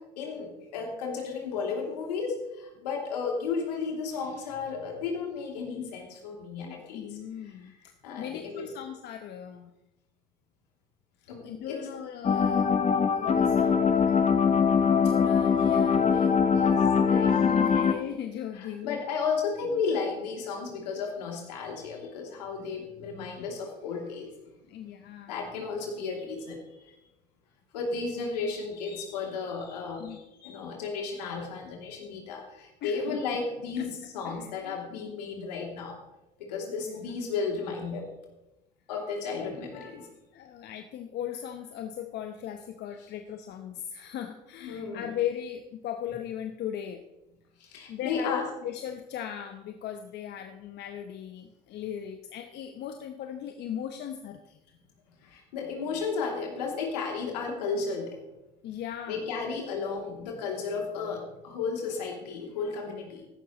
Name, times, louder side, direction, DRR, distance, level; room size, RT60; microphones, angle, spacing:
voice 1, 0.2-7.1 8.0-8.7 11.3-11.8 16.5-17.7 18.6-24.3 25.3-26.6 27.7-36.0 36.4-38.1 38.9-40.1 44.6-45.1 47.6-48.4 55.2-58.2 59.1-63.3, left 5 dB, 80° left, 1 dB, 2.9 m, -33 dB
voice 2, 6.6-7.7 8.2-9.7 11.4-14.5 15.0-16.4 17.1-19.0 19.4-19.8 24.7-25.4 30.0-30.2 32.8-33.2 33.8-33.9 34.2-34.8 35.0-35.2 36.8-37.1 40.3-47.0 47.9-54.6 58.6-59.3, left 10 dB, 55° left, 6 dB, 1.0 m, -38 dB
sound 1, 12.2-17.9, left 6 dB, 35° left, 1.2 m, -22 dB
15.0 x 12.0 x 3.1 m, 0.95 s
hypercardioid pair, 60°, 21 cm